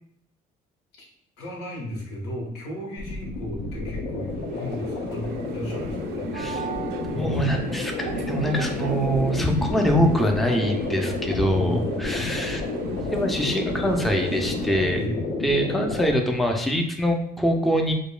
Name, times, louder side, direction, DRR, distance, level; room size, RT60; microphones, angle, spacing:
voice 1, 1.4-6.3 7.1-7.6 11.6-12.1 14.9-15.2, left 1 dB, 90° left, -2 dB, 1.2 m, -34 dB
sound 1, 3.0-16.1, left 3 dB, 70° left, 0.6 m, -30 dB
sound 2, 4.2-15.1, right 6 dB, 75° right, 0.4 m, -37 dB
voice 2, 6.3-6.7 7.2-12.6 13.1-15.2 15.4-17.9, equal, ahead, 3 dB, 0.4 m, -24 dB
4.9 x 2.2 x 2.2 m, 0.74 s
cardioid pair, 110°, 17 cm